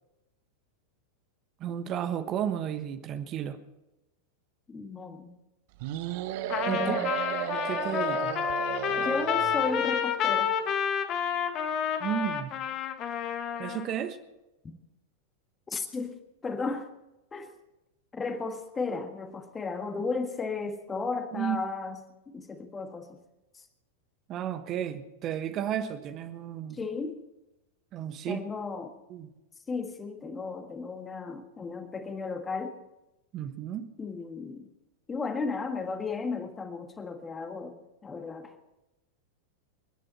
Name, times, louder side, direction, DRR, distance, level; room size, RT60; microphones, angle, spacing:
voice 1, 1.6-3.6 6.7-7.0 7.5-8.3 12.0-12.5 13.6-14.2 21.3-21.6 24.3-26.8 27.9-28.4 29.1-29.3 33.3-33.9, right 10 dB, 35° right, 8 dB, 1.3 m, -33 dB
voice 2, 4.7-5.3 6.7-7.1 8.9-10.5 14.6-14.8 15.7-16.9 17.3-17.5 18.1-23.2 23.5-23.7 26.7-27.2 28.3-28.9 29.7-32.8 34.0-34.7 35.1-38.6, left 4 dB, 15° left, 6 dB, 1.6 m, -34 dB
sound 1, 5.8-10.0, right 13 dB, 50° right, 0.9 m, -34 dB
Trumpet, 6.5-13.9, left 8 dB, 35° left, 1.7 m, -29 dB
27.5 x 11.0 x 4.4 m, 0.97 s
figure-of-eight pair, 90°, 0 cm